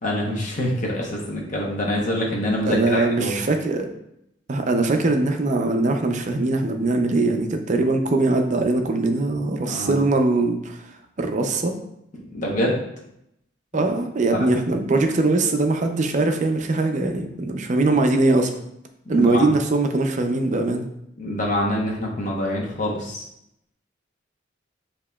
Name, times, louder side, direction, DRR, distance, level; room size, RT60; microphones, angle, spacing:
voice 1, 0.0-3.3 9.6-10.0 12.3-12.8 13.7-13.8 14.3-14.5 19.1-19.4 21.2-23.2, left 1 dB, 40° left, -2 dB, 0.9 m, -25 dB
voice 2, 2.7-3.9 4.5-10.9 11.2-11.8 13.7-18.5 19.1-20.8, right 2 dB, 40° right, 5 dB, 0.4 m, -21 dB
7.1 x 2.8 x 2.2 m, 0.79 s
head